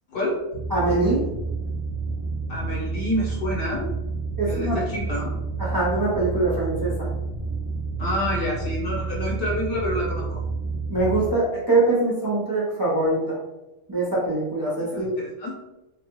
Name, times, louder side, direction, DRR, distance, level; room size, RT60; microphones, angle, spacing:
voice 1, 0.1-0.4 2.5-3.9 4.5-5.3 8.0-10.4 14.9-15.6, left 1 dB, 50° left, -4 dB, 0.9 m, -28 dB
sound 1, 0.5-11.3, right 4 dB, 25° left, 0.9 m, -29 dB
voice 2, 0.7-1.3 4.4-4.8 5.6-7.1 10.9-13.4 13.9-15.1, right 2 dB, 20° right, -7 dB, 0.6 m, -23 dB
3.3 x 2.3 x 3.0 m, 0.98 s
omnidirectional pair, 1.3 m